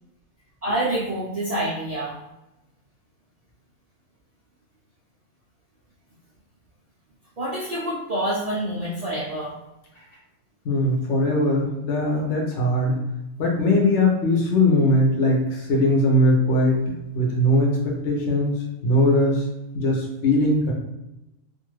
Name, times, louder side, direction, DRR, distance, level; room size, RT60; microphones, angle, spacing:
voice 1, 0.6-2.2 7.4-9.6 9.9-10.0, right 1 dB, 70° right, -7 dB, 0.3 m, -27 dB
voice 2, 10.6-13.0 13.4-18.5 18.8-19.4 19.7-20.7, left 1 dB, 60° left, -1 dB, 1.0 m, -20 dB
2.6 x 2.5 x 3.1 m, 0.95 s
omnidirectional pair, 1.4 m